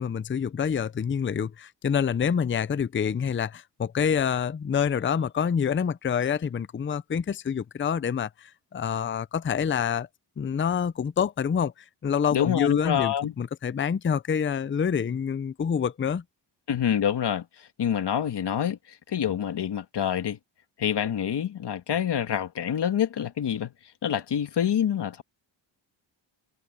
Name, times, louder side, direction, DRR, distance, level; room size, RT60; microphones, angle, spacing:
voice 1, 0.0-10.1 10.4-16.2, left 7 dB, 25° left, 0.6 m, -27 dB
voice 2, 12.3-13.3 16.7-20.4 20.8-23.7 24.0-25.2, left 9 dB, 60° left, 1.6 m, -27 dB
cardioid pair, 85°, 45 cm